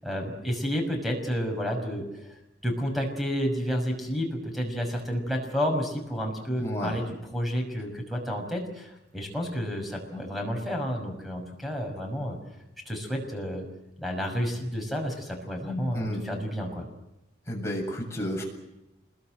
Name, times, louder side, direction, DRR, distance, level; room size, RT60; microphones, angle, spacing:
voice 1, 0.0-12.4 12.9-13.6 14.0-16.9, equal, ahead, 3 dB, 6.1 m, -31 dB
voice 2, 6.6-7.0 15.9-16.2 17.5-18.4, equal, 15° left, -1 dB, 7.5 m, -31 dB
27.5 x 21.5 x 7.9 m, 0.93 s
head